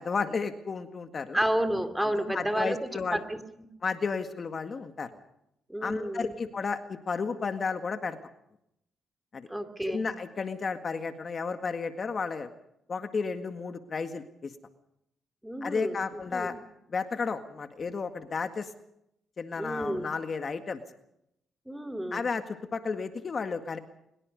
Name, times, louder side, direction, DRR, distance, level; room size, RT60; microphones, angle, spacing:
voice 1, 0.0-1.4 2.0-3.2 3.8-5.1 5.8-8.2 9.3-9.5 9.9-12.5 12.9-14.5 15.6-16.6 16.9-18.7 19.4-20.8 22.1-23.8, left 5 dB, 40° left, 7 dB, 1.9 m, -33 dB
voice 2, 1.3-3.4 5.7-6.3 9.5-10.1 15.4-16.6 19.6-20.1 21.7-22.3, right 1 dB, 5° right, 8 dB, 2.6 m, -31 dB
23.5 x 22.0 x 5.4 m, 0.78 s
cardioid pair, 90°, 0 cm